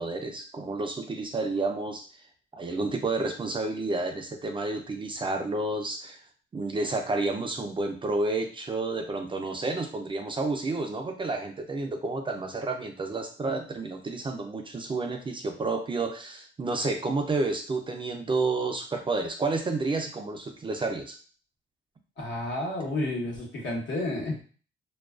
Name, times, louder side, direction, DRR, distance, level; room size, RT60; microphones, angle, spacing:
voice 1, 0.0-2.1 2.5-6.2 6.5-21.2, right 3 dB, 25° right, 4 dB, 0.4 m, -30 dB
voice 2, 22.2-24.5, left 1 dB, 65° left, -3 dB, 1.0 m, -31 dB
2.3 x 2.2 x 2.3 m, 0.39 s
cardioid pair, 90°, 20 cm